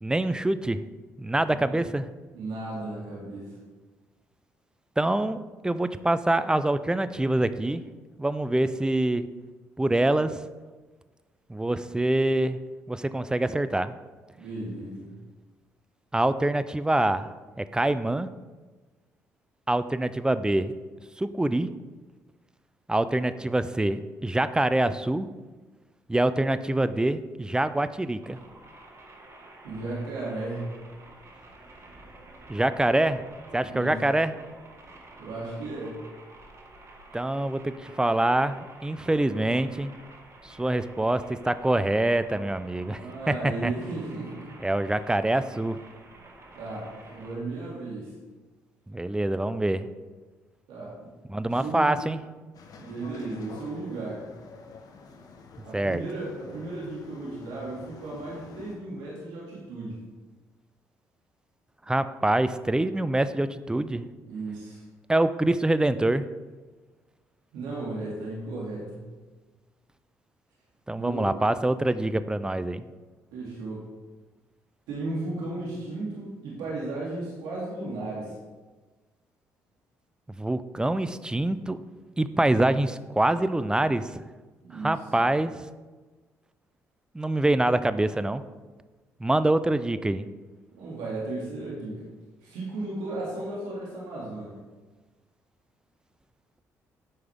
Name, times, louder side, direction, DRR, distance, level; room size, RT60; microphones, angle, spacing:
voice 1, 0.0-0.8 1.2-2.1 5.0-7.8 8.2-9.3 9.8-10.4 11.5-12.6 12.9-13.9 16.1-17.3 17.6-18.3 19.7-20.7 21.2-21.7 22.9-25.3 26.1-28.4 32.5-33.2 33.5-34.3 37.1-39.9 40.4-43.0 43.3-43.7 44.6-45.8 48.9-49.9 51.3-52.2 55.7-56.0 61.9-64.1 65.1-66.3 70.9-72.8 80.4-81.8 82.2-84.2 84.7-85.6 87.1-88.4 89.2-90.3, right 1 dB, 10° right, 13 dB, 0.5 m, -25 dB
voice 2, 2.3-3.6 14.3-15.1 29.6-30.8 33.7-33.9 35.2-36.0 42.9-44.5 46.6-48.1 50.7-51.1 51.5-51.9 52.8-54.3 55.6-60.0 64.3-64.8 67.5-69.1 70.9-71.4 73.3-73.9 74.9-78.3 84.6-85.0 90.7-92.1 92.4-94.6, right 2 dB, 80° right, -5 dB, 2.3 m, -35 dB
sound 1, 28.2-47.4, right 2 dB, 40° right, 1.6 m, -50 dB
sound 2, 52.5-58.8, left 4 dB, 60° left, 1.1 m, -48 dB
9.4 x 5.7 x 3.5 m, 1.3 s
hypercardioid pair, 55°, 7 cm